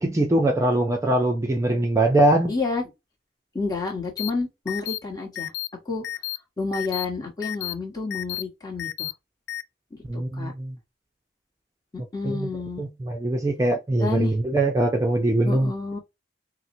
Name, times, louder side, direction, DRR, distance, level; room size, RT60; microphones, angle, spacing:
voice 1, 0.0-2.5 10.1-10.8 12.2-12.5 12.8-15.7, right 1 dB, 20° right, 0.4 m, -22 dB
voice 2, 2.5-2.8 3.5-5.5 5.8-6.0 6.6-9.1 10.1-10.5 11.9-12.8 14.0-14.3 15.4-16.0, left 3 dB, 25° left, 1.1 m, -29 dB
sound 1, 4.2-4.3 4.7-5.0 5.3-5.7 6.0-6.4 6.7-7.0 7.4-7.7 8.1-8.4 8.8-9.1 9.5-9.6, left 15 dB, 80° left, 0.3 m, -31 dB
4.1 x 2.0 x 2.6 m
head